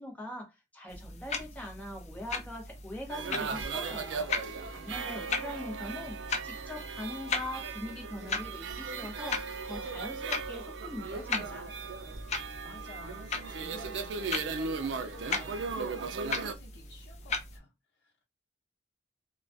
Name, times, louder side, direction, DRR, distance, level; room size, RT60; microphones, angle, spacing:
voice 1, 0.0-6.2 6.4-11.7, left 1 dB, 10° left, 0.7 m, -42 dB
sound 1, 0.9-17.6, left 4 dB, 35° left, 0.4 m, -39 dB
sound 2, 3.1-16.5, right 5 dB, 75° right, 0.4 m, -38 dB
voice 2, 4.7-6.1 12.6-18.2, left 2 dB, 60° left, 0.7 m, -52 dB
2.3 x 2.2 x 2.5 m
head